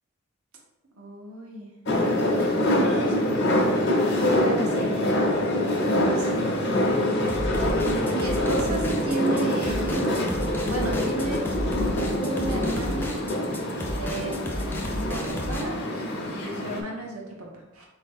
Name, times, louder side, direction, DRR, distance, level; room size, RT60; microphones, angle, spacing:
voice 1, 1.0-1.8 2.0-6.6 7.9-11.4 11.9-13.2 13.9-17.8, right 2 dB, 90° right, -1 dB, 0.9 m, -34 dB
sound 1, 1.9-16.8, left 1 dB, 55° left, 0.6 m, -25 dB
sound 2, 7.3-15.6, equal, 10° left, 0.3 m, -32 dB
4.2 x 2.7 x 3.5 m, 1.0 s
head